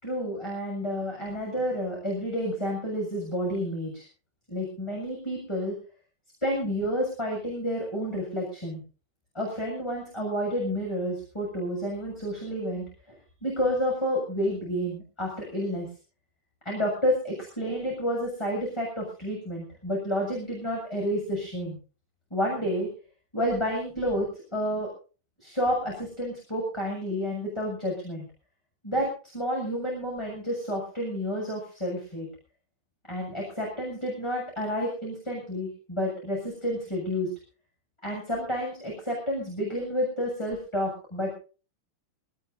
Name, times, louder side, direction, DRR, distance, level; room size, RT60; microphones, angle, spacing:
voice 1, 0.0-4.1 4.5-5.7 6.4-8.8 9.3-15.9 16.6-21.8 22.3-22.9 23.3-24.9 25.4-28.2 28.8-29.1 29.3-32.3 33.1-37.3 38.0-41.3, equal, 10° left, -1 dB, 7.3 m, -30 dB
22.0 x 20.0 x 2.7 m, 0.37 s
omnidirectional pair, 3.7 m